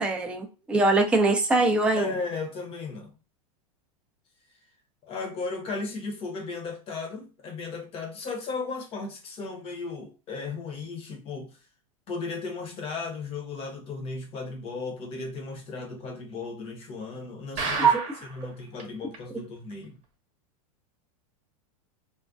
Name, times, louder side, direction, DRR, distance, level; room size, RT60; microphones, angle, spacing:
voice 1, 0.0-2.1 17.8-17.9, right 3 dB, 5° right, 0.4 m, -22 dB
voice 2, 1.9-3.1 5.0-11.6 12.1-17.9 18.3-20.0, left 4 dB, 30° left, 0.7 m, -35 dB
sound 1, 17.6-18.4 18.8-18.9 19.1-19.2 19.7-19.8, right 4 dB, 35° right, 0.8 m, -31 dB
2.3 x 2.1 x 2.5 m
hypercardioid pair, 120°, 19 cm